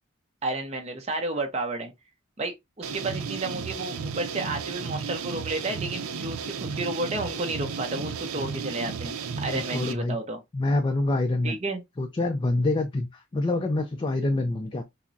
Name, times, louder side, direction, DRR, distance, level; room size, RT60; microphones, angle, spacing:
voice 1, 0.4-1.9 2.4-10.4 11.4-11.8, right 2 dB, 30° right, 0.6 m, -32 dB
sound 1, 2.8-9.9, right 5 dB, 85° right, 0.5 m, -34 dB
voice 2, 9.4-10.2 10.5-11.6 12.0-14.8, left 2 dB, 25° left, 0.3 m, -26 dB
5.7 x 2.0 x 2.6 m
head